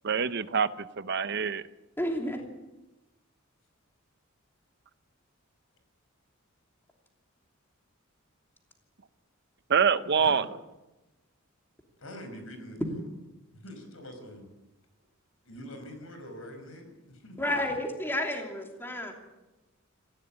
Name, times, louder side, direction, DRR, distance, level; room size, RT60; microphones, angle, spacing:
voice 1, 0.0-1.6 9.7-10.4, right 6 dB, 55° right, 14 dB, 0.7 m, -25 dB
voice 2, 2.0-2.4 17.4-19.1, left 1 dB, 10° left, 2 dB, 2.9 m, -31 dB
voice 3, 12.0-13.0 13.5-14.5 15.4-17.5, equal, 70° left, 7 dB, 5.3 m, -44 dB
19.0 x 15.5 x 8.8 m, 1.0 s
head